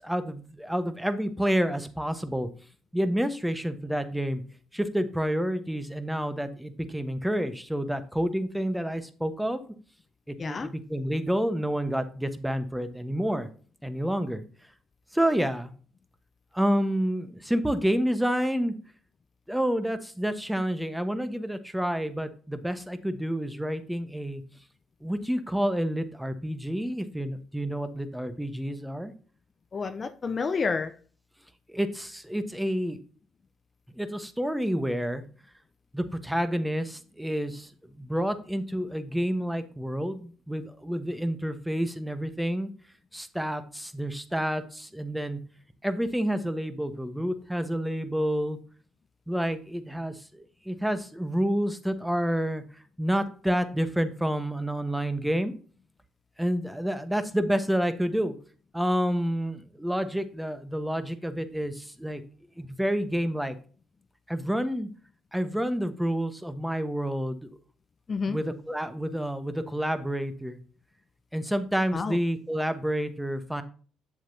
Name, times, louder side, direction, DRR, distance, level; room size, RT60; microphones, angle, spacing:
voice 1, 0.0-2.5 2.9-4.4 4.7-9.6 10.4-13.5 13.8-14.4 15.1-15.7 16.5-18.7 19.5-24.4 25.0-29.1 31.7-33.0 34.0-35.2 35.9-37.7 38.0-42.7 43.1-45.4 45.8-48.6 49.3-52.6 53.0-55.5 56.4-58.3 58.7-62.2 62.6-63.5 64.3-64.9 65.3-67.6 68.3-70.6 71.3-73.6, equal, 5° right, 10 dB, 1.1 m, -29 dB
voice 2, 10.4-10.7 29.7-30.9 68.1-68.4 71.9-72.2, left 4 dB, 40° left, 10 dB, 0.6 m, -29 dB
8.1 x 7.3 x 2.7 m, 0.41 s
hypercardioid pair, 55°, 0 cm